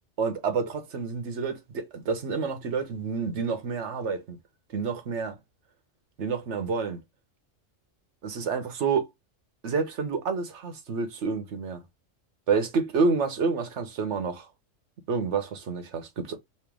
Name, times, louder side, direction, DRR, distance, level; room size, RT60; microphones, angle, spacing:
voice 1, 0.2-4.4 4.7-5.4 6.2-7.0 8.2-9.1 9.6-11.8 12.5-14.5 15.1-16.4, right 5 dB, 70° right, 1.2 m, -28 dB
3.1 x 3.1 x 3.4 m
omnidirectional pair, 1.3 m